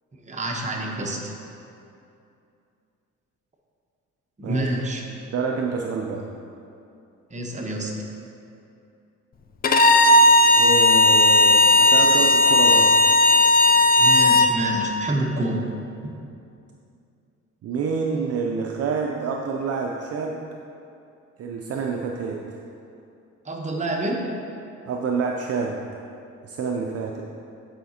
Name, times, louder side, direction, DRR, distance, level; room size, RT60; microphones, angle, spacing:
voice 1, 0.3-1.3 4.4-5.1 7.3-7.9 14.0-15.6 23.4-24.2, right 1 dB, 25° right, -1 dB, 0.9 m, -27 dB
voice 2, 5.3-6.2 10.6-13.0 17.6-20.4 21.4-22.4 24.9-25.8 26.4-27.2, right 5 dB, 50° right, 1 dB, 0.5 m, -27 dB
Bowed string instrument, 9.6-14.5, left 1 dB, 30° left, 0.4 m, -15 dB
8.8 x 4.9 x 2.8 m, 2.6 s
cardioid pair, 90°, 30 cm